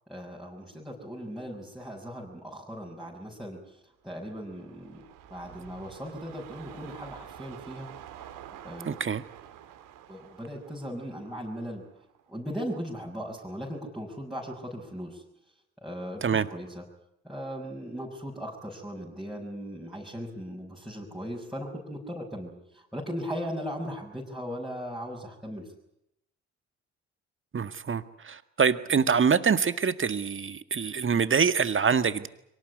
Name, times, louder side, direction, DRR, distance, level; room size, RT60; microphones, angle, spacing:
voice 1, 0.1-3.6 4.0-5.0 5.3-7.9 8.6-9.0 10.1-11.8 12.3-15.2 15.8-16.8 17.2-25.7, equal, ahead, -5 dB, 6.4 m, -38 dB
sound 1, 4.1-12.5 12.9-13.0, right 10 dB, 75° right, 2.6 m, -48 dB
voice 2, 8.9-9.2 16.2-16.5 27.5-32.3, right 6 dB, 40° right, 11 dB, 1.8 m, -25 dB
23.5 x 18.5 x 9.9 m, 0.79 s
hypercardioid pair, 55°, 33 cm